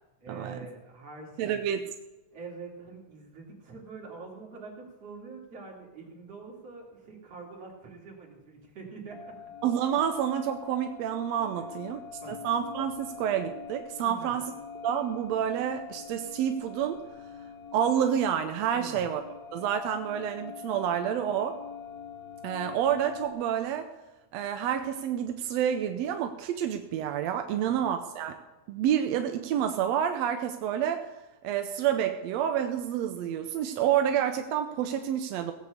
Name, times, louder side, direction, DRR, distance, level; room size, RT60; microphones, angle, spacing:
voice 1, 0.2-1.6 2.3-9.3 11.6-12.4 14.0-14.4 18.7-19.1 27.5-27.8, right 4 dB, 50° right, -2 dB, 4.1 m, -45 dB
voice 2, 1.4-1.9 9.6-12.0 12.3-14.5 14.8-17.1 17.7-19.2 19.5-21.6 22.4-23.9 24.3-28.4 28.7-31.1 31.4-35.5, right 9 dB, 75° right, 6 dB, 1.7 m, -28 dB
sound 1, 9.1-23.3, left 7 dB, 50° left, 2.5 m, -44 dB
17.5 x 8.2 x 6.8 m, 1.1 s
omnidirectional pair, 3.6 m